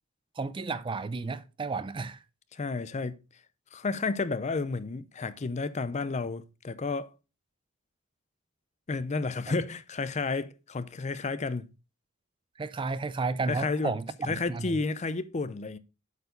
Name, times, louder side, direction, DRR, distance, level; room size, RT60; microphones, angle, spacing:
voice 1, 0.4-2.2 12.6-14.8, right 4 dB, 25° right, 0.4 m, -32 dB
voice 2, 2.5-3.2 3.7-7.1 8.9-11.7 13.5-14.0 14.2-15.8, left 3 dB, 35° left, 0.5 m, -31 dB
8.1 x 4.6 x 5.1 m
head